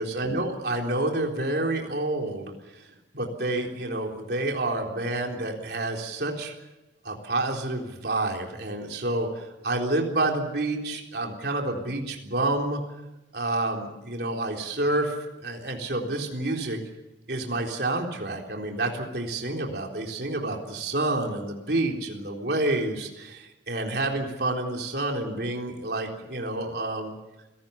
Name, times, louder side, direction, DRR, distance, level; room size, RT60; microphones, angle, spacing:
voice 1, 0.0-2.5 3.1-6.5 7.0-12.8 13.3-15.2 15.4-16.8 17.3-27.1, right 2 dB, 60° right, 1 dB, 3.9 m, -29 dB
29.0 x 18.0 x 7.1 m, 1.0 s
head